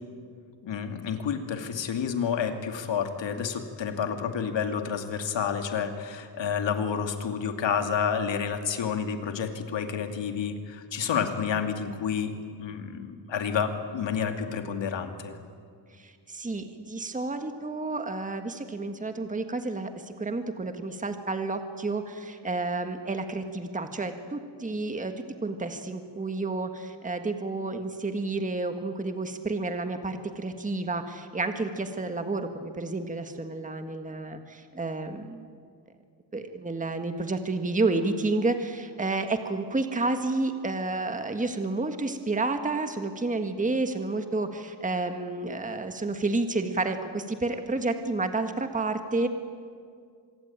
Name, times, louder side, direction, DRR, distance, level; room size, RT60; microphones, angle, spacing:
voice 1, 0.6-15.4, left 7 dB, 75° left, 6 dB, 2.6 m, -30 dB
voice 2, 16.0-19.9 20.2-25.1 25.4-35.5 36.3-49.3, right 3 dB, 15° right, 6 dB, 1.7 m, -30 dB
25.5 x 23.0 x 8.9 m, 2.2 s
cardioid pair, 110°, 45 cm